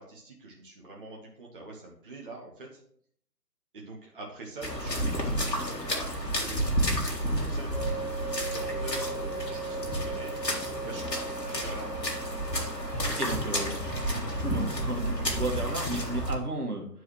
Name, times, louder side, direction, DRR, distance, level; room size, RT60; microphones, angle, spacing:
voice 1, 0.0-2.8 3.7-12.0, right 2 dB, 35° right, -1 dB, 0.8 m, -45 dB
sound 1, 4.6-16.3, equal, 80° left, 2.0 m, -31 dB
sound 2, 7.7-16.2, right 4 dB, 35° left, 2.0 m, -40 dB
voice 2, 13.1-16.9, right 2 dB, 65° right, 2 dB, 1.6 m, -34 dB
9.7 x 4.6 x 3.0 m, 0.64 s
figure-of-eight pair, 145°, 48 cm